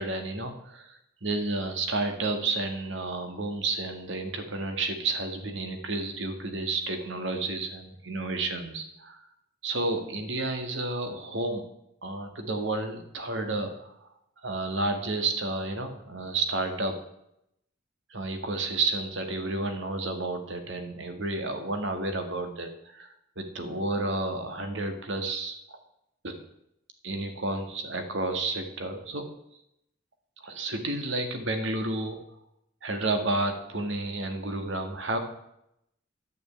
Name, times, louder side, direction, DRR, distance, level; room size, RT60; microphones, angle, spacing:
voice 1, 0.0-9.2 9.6-11.6 12.0-13.9 14.4-17.0 18.1-23.1 23.4-25.6 26.2-26.3 27.0-29.2 30.4-32.2 32.8-35.2, right 2 dB, 65° right, 6 dB, 1.7 m, -31 dB
11.0 x 6.6 x 8.7 m, 0.79 s
head